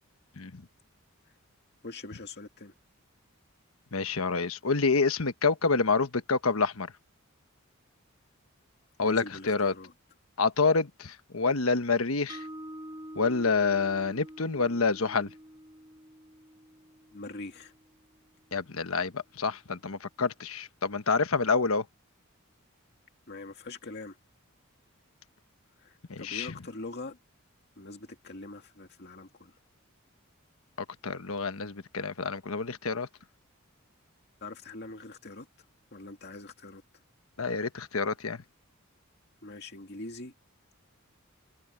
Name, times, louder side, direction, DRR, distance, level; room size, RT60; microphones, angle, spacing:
voice 1, 1.8-2.7 9.0-9.9 17.1-17.7 23.3-24.2 25.8-27.2 27.8-29.6 34.4-37.0 39.4-40.3, left 2 dB, 50° left, 2.2 m, -43 dB
voice 2, 3.9-6.9 9.0-9.7 10.4-12.4 13.1-15.3 18.5-21.8 26.1-26.5 31.0-33.1 37.4-38.4, left 4 dB, 80° left, 1.2 m, -28 dB
Mallet percussion, 12.3-18.5, right 1 dB, 20° right, 5.0 m, -47 dB
open air
head